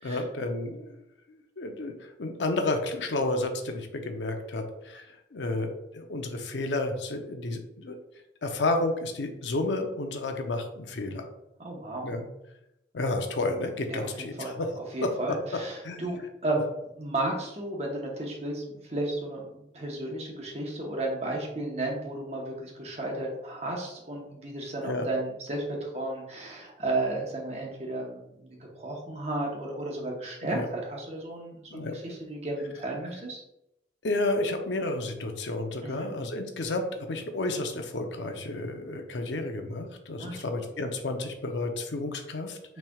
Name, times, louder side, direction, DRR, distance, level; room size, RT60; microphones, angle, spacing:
voice 1, 0.0-1.0 1.3-8.0 8.4-11.3 12.0-12.3 12.9-14.7 15.0-15.1 15.8-16.1 16.5-16.6 24.8-25.1 30.4-30.7 31.7-32.0 34.0-42.8, left 2 dB, 85° left, 5 dB, 0.7 m, -31 dB
voice 2, 11.6-12.1 13.9-14.6 14.9-16.6 17.0-33.4 35.8-36.1 40.2-40.4, right 2 dB, 35° right, 0 dB, 1.0 m, -33 dB
6.0 x 3.3 x 2.3 m, 0.85 s
head